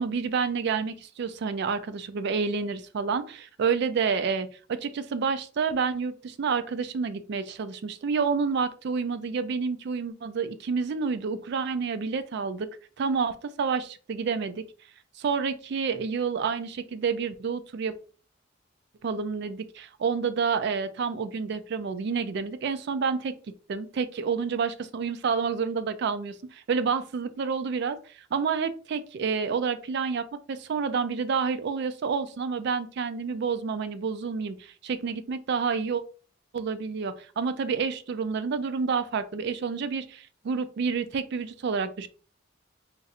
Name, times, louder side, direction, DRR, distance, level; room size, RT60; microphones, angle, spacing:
voice 1, 0.0-12.7 13.0-14.6 15.2-17.9 19.0-23.3 23.7-36.0 36.5-42.1, right 5 dB, 60° right, 11 dB, 0.4 m, -29 dB
2.6 x 2.4 x 4.0 m, 0.39 s
head